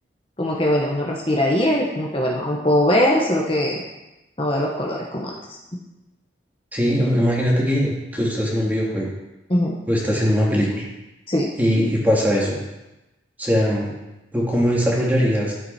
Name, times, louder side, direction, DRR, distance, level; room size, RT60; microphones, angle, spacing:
voice 1, 0.4-3.8 4.4-5.6 9.5-9.8 11.3-11.5, left 1 dB, 30° left, -2 dB, 1.3 m, -21 dB
voice 2, 6.7-9.1 9.9-10.9 11.6-12.6 13.4-14.0 14.3-15.5, equal, 10° right, -4 dB, 2.2 m, -20 dB
12.0 x 8.0 x 4.4 m, 0.98 s
head